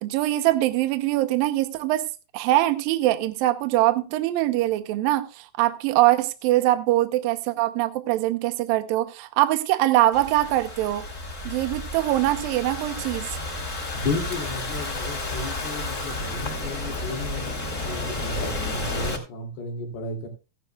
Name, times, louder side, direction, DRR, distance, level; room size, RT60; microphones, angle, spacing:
voice 1, 0.0-2.1 2.3-11.1 11.5-13.4, right 15 dB, 80° right, 2.4 m, -23 dB
Thunderstorm / Rain, 10.1-19.2, left 2 dB, 25° left, 2.1 m, -31 dB
voice 2, 13.9-20.3, left 2 dB, 90° left, 4.8 m, -33 dB
15.5 x 12.0 x 2.3 m
omnidirectional pair, 4.4 m